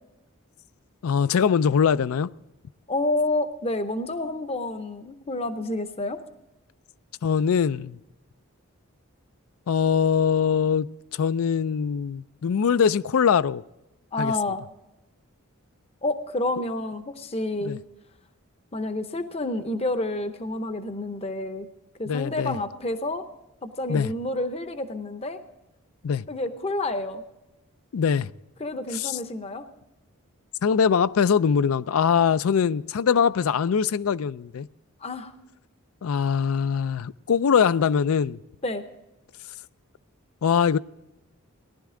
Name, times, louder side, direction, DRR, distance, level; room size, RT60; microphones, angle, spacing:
voice 1, 1.0-2.3 7.2-8.0 9.7-10.9 11.1-13.6 14.2-14.3 17.6-17.8 22.1-22.6 23.9-24.1 26.0-26.2 27.9-28.3 28.9-29.2 30.6-34.7 36.0-38.4 40.4-40.8, left 7 dB, 75° left, 0.4 m, -22 dB
voice 2, 2.9-6.2 14.1-14.6 16.0-17.8 18.7-21.7 22.0-23.2 23.6-25.4 26.3-27.2 28.6-29.6 35.0-35.3 38.6-38.8, left 2 dB, 25° left, 0.7 m, -29 dB
18.5 x 11.5 x 3.7 m
head